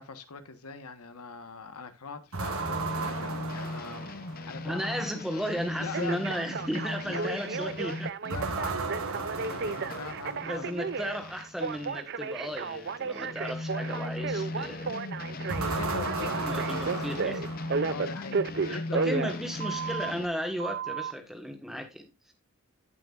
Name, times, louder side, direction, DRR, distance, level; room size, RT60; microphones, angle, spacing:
voice 1, 0.0-4.1 4.5-5.1 5.8-6.2 7.0-7.4 8.2-10.7 13.1-13.3 14.1-14.2 15.4-17.3 17.9-19.2, left 4 dB, 85° left, 1.4 m, -42 dB
sound 1, 2.3-4.7 8.3-10.8 15.5-18.1, right 3 dB, 75° right, 1.5 m, -35 dB
sound 2, 2.6-12.0 12.4-20.3, left 2 dB, 40° left, 0.7 m, -38 dB
Telephone, 2.6-3.1 5.9-20.1 20.6-21.1, right 5 dB, 50° right, 0.5 m, -33 dB
voice 2, 4.6-8.1 10.4-15.0 16.4-17.4 18.7-22.3, equal, ahead, 1.4 m, -35 dB
15.0 x 5.8 x 2.5 m
head